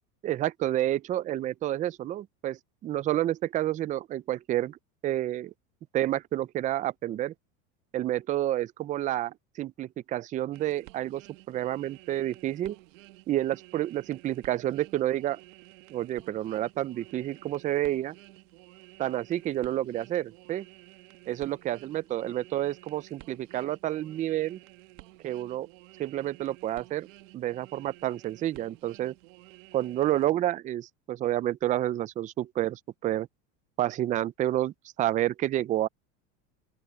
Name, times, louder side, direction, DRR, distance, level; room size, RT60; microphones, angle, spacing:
voice 1, 0.2-4.8 5.0-5.5 5.9-7.3 7.9-12.8 13.3-15.4 15.9-18.2 19.0-20.7 21.3-24.6 25.2-25.7 26.0-27.1 27.3-29.2 29.7-33.3 33.8-35.9, right 13 dB, 20° right, 0.3 m, -29 dB
sound 1, 10.5-30.3, right 20 dB, 80° right, 1.4 m, -53 dB
open air
supercardioid pair, 130°, 38 cm